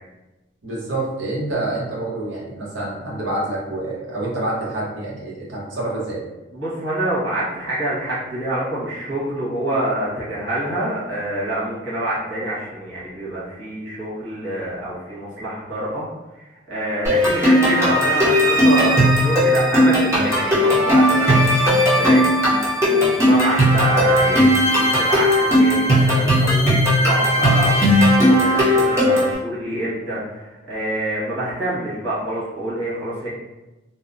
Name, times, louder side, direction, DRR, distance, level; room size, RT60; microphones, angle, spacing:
voice 1, 0.6-6.2, right 2 dB, 70° right, -5 dB, 0.8 m, -27 dB
voice 2, 6.5-16.1 16.4-33.3, right 1 dB, 90° right, -8 dB, 1.3 m, -26 dB
sound 1, 17.0-29.3, equal, 15° right, 0.8 m, -16 dB
2.8 x 2.0 x 2.5 m, 1.1 s
head